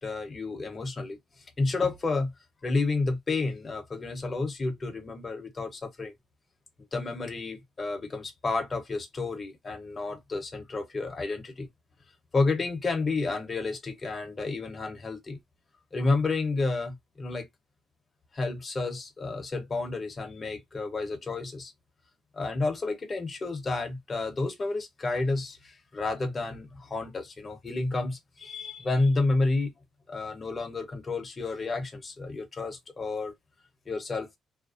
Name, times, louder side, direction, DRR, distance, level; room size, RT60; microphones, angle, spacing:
voice 1, 0.0-2.3 2.6-6.1 6.9-11.7 12.3-15.4 15.9-17.5 18.3-21.7 22.3-29.7 30.1-33.3 33.9-34.4, left 3 dB, 35° left, 0.8 m, -30 dB
2.5 x 2.1 x 2.5 m
cardioid pair, 90°, 0 cm